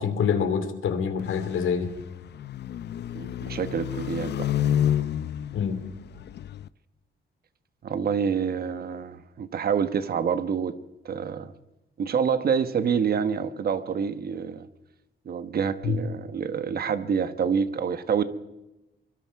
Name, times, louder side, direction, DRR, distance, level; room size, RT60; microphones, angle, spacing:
voice 1, 0.0-1.9 5.5-5.8 15.8-16.0, left 7 dB, 85° left, 9 dB, 2.8 m, -26 dB
sound 1, 1.2-6.7, left 10 dB, 60° left, 0.6 m, -30 dB
voice 2, 3.1-4.5 7.8-10.8 11.0-11.5 12.0-14.7 15.2-18.2, right 7 dB, 50° right, 11 dB, 1.2 m, -27 dB
24.5 x 22.5 x 4.7 m, 0.99 s
wide cardioid pair, 175°, 20 cm